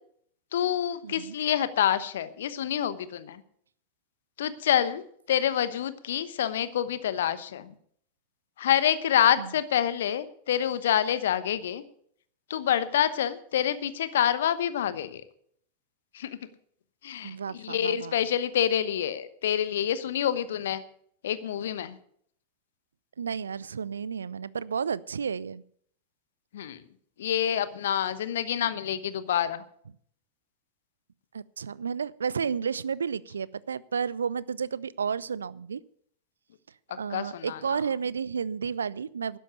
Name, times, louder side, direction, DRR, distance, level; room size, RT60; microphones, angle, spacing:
voice 1, 0.5-3.4 4.4-7.7 8.6-11.8 12.5-15.2 16.1-16.4 17.0-20.8 21.2-22.0 26.5-26.8 27.2-29.6 37.1-37.8, left 10 dB, 60° left, 14 dB, 1.0 m, -27 dB
voice 2, 1.0-1.3 9.4-9.5 17.2-18.1 23.2-25.6 31.3-35.8 36.9-39.4, right 6 dB, 70° right, 21 dB, 0.4 m, -32 dB
12.5 x 10.0 x 6.7 m, 0.64 s
figure-of-eight pair, 90°, 0 cm